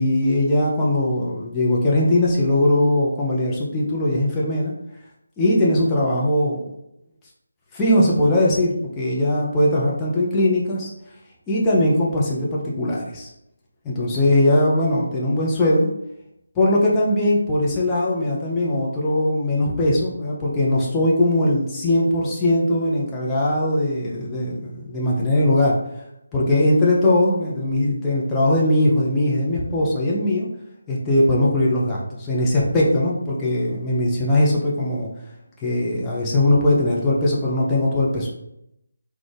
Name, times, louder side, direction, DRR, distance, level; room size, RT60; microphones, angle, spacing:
voice 1, 0.0-4.7 5.4-6.7 7.7-10.9 11.5-13.3 13.8-15.9 16.6-25.8 26.3-30.5 30.9-35.1 35.6-38.3, left 1 dB, 10° left, -5 dB, 0.7 m, -20 dB
4.0 x 2.4 x 3.3 m, 0.82 s
figure-of-eight pair, 155°, 0 cm